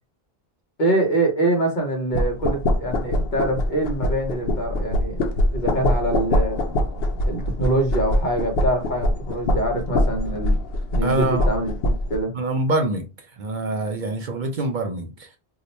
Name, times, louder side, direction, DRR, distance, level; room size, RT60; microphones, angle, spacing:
voice 1, 0.8-5.2 5.5-6.6 7.2-10.6 10.9-12.3, right 1 dB, 50° left, 1.0 m, -24 dB
sound 1, 2.1-12.2, left 1 dB, 70° left, 0.8 m, -23 dB
voice 2, 11.0-11.5 12.3-13.1 13.4-15.3, right 2 dB, 60° right, 0.6 m, -25 dB
2.8 x 2.1 x 4.0 m
omnidirectional pair, 1.0 m